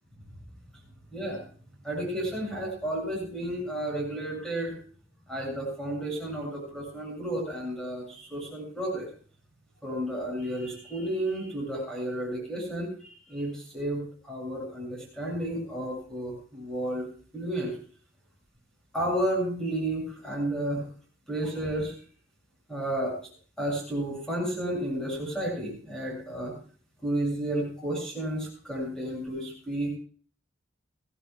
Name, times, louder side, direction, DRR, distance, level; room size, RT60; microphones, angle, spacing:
voice 1, 1.8-4.7 5.3-9.1 9.8-12.9 13.3-17.1 17.3-17.7 18.9-20.8 21.3-21.9 22.7-23.3 23.6-26.5 27.0-29.9, right 1 dB, 5° left, -2 dB, 7.4 m, -32 dB
22.5 x 16.0 x 2.4 m, 0.42 s
head